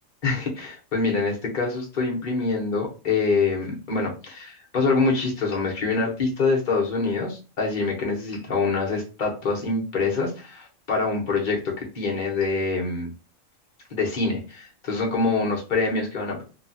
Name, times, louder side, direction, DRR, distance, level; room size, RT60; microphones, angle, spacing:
voice 1, 0.2-13.1 13.9-16.4, left 3 dB, 40° left, -1 dB, 1.0 m, -25 dB
3.0 x 2.3 x 2.7 m, 0.34 s
omnidirectional pair, 1.3 m